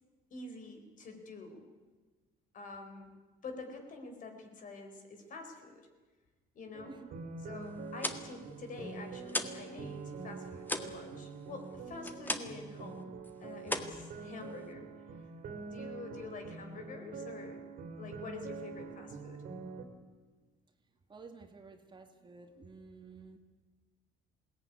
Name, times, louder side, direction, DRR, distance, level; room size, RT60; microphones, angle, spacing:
voice 1, 0.3-1.6 2.5-3.1 3.4-5.9 6.5-7.0 7.4-14.9 15.7-17.7 17.9-19.4, left 3 dB, 50° left, 5 dB, 4.4 m, -47 dB
sound 1, 6.7-19.8, right 4 dB, 60° right, 3.0 m, -45 dB
sound 2, 7.8-9.7 10.0-12.7 13.0-13.3 13.6-14.7, left 1 dB, 10° left, 1.7 m, -38 dB
voice 2, 21.1-23.4, right 4 dB, 30° right, 5 dB, 2.3 m, -52 dB
21.0 x 18.0 x 9.7 m, 1.3 s
cardioid pair, 110°, 17 cm